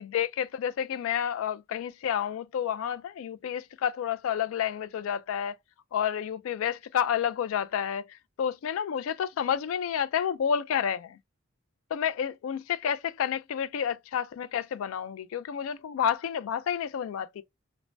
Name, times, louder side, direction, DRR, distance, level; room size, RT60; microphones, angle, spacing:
voice 1, 0.0-5.6 5.9-11.2 11.9-17.4, left 8 dB, 85° left, 0.3 m, -30 dB
3.1 x 2.1 x 2.5 m
head